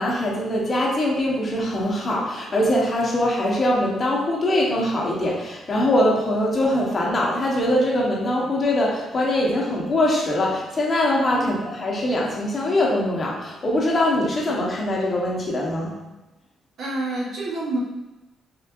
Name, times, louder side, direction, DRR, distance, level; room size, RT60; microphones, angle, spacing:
voice 1, 0.0-15.9, left 1 dB, 35° left, -3 dB, 1.0 m, -22 dB
voice 2, 16.8-17.8, right 2 dB, 65° right, -4 dB, 1.0 m, -27 dB
3.7 x 3.1 x 2.5 m, 1.0 s
cardioid pair, 90°, 0 cm